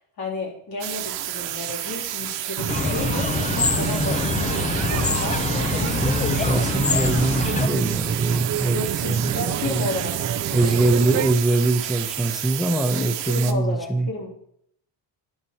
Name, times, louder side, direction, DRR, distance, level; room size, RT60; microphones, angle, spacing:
voice 1, 0.0-3.1 3.5-5.4 5.7-6.3 8.7-10.8 13.0-14.3, left 3 dB, 55° left, -2 dB, 3.6 m, -33 dB
sound 1, 0.8-13.5, right 12 dB, 90° right, 0.8 m, -31 dB
sound 2, 2.6-11.3, right 9 dB, 40° right, 0.5 m, -29 dB
sound 3, 2.7-7.7, left 4 dB, 20° left, 0.4 m, -25 dB
voice 2, 5.9-8.8 9.1-9.8 10.5-14.1, right 2 dB, ahead, 6 dB, 0.9 m, -23 dB
11.0 x 6.8 x 4.3 m, 0.68 s
cardioid pair, 120°, 43 cm